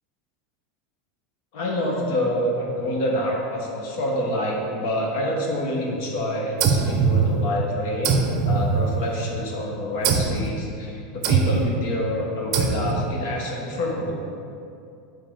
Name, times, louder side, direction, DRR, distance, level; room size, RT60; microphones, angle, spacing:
voice 1, 1.5-14.2, left 1 dB, 60° left, -2 dB, 1.2 m, -27 dB
sound 1, 6.6-7.7 8.0-9.3 10.0-10.5 11.2-11.8 12.5-13.2, right 5 dB, 40° right, 0.6 m, -22 dB
7.3 x 4.7 x 3.9 m, 2.5 s
supercardioid pair, 165°, 0 cm